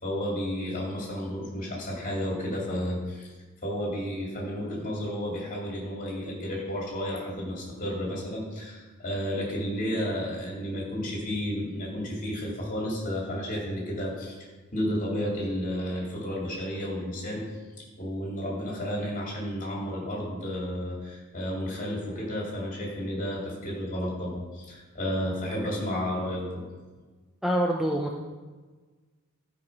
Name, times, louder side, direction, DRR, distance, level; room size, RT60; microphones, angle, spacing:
voice 1, 0.0-3.3 3.6-14.4 14.7-17.5 18.0-26.6, equal, 35° left, -3 dB, 2.6 m, -32 dB
voice 2, 27.4-28.2, right 1 dB, ahead, -1 dB, 0.6 m, -26 dB
12.5 x 4.9 x 5.4 m, 1.3 s
head